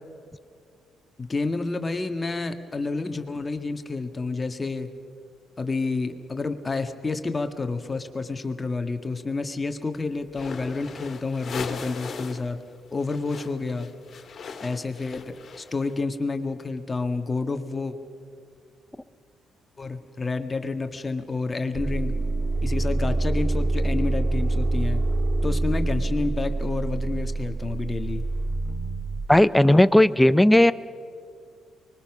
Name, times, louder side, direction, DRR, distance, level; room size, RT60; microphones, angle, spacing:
voice 1, 1.2-4.9 5.6-12.6 12.9-13.9 14.6-18.0 19.8-22.2 22.6-25.0 25.4-28.2, left 3 dB, 25° left, 7 dB, 1.8 m, -29 dB
sound 1, 10.3-12.5 12.8-15.9, left 5 dB, 50° left, 2.5 m, -38 dB
sound 2, 21.7-29.3, right 2 dB, 30° right, 1.2 m, -26 dB
voice 2, 29.3-30.7, left 1 dB, 5° left, 13 dB, 0.7 m, -16 dB
24.5 x 21.5 x 6.2 m, 2.2 s
cardioid pair, 90°, 0 cm